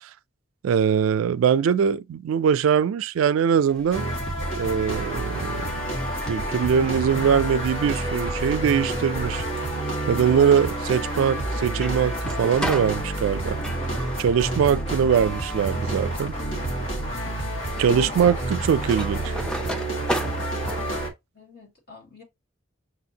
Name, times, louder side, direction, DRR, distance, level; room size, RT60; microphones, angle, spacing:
voice 1, 0.6-4.1 4.6-5.7 6.3-9.4 10.1-13.6 14.2-16.3 17.8-19.3, right 7 dB, 85° right, 0.3 m, -22 dB
sound 1, 3.7-20.8, equal, 5° left, 0.5 m, -38 dB
sound 2, 3.9-21.1, right 1 dB, 65° left, 1.6 m, -29 dB
voice 2, 17.9-18.4 21.3-22.2, left 4 dB, 50° left, 1.9 m, -43 dB
6.4 x 2.5 x 2.7 m
head